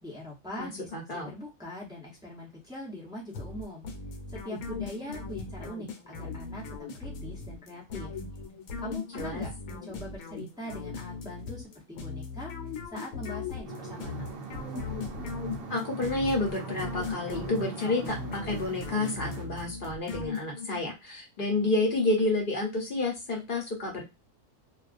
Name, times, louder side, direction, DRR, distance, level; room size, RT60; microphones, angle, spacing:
voice 1, 0.0-3.9 4.3-8.2 8.8-12.5 12.9-14.3, left 1 dB, 5° right, -4 dB, 0.3 m, -42 dB
voice 2, 0.6-1.3 9.1-9.4 15.7-24.0, left 2 dB, 45° left, 0 dB, 0.8 m, -30 dB
sound 1, 3.3-20.8, left 5 dB, 75° left, 1.0 m, -39 dB
sound 2, 13.6-19.4, right 6 dB, 65° right, 0.6 m, -40 dB
2.3 x 2.3 x 2.4 m, 0.23 s
omnidirectional pair, 1.5 m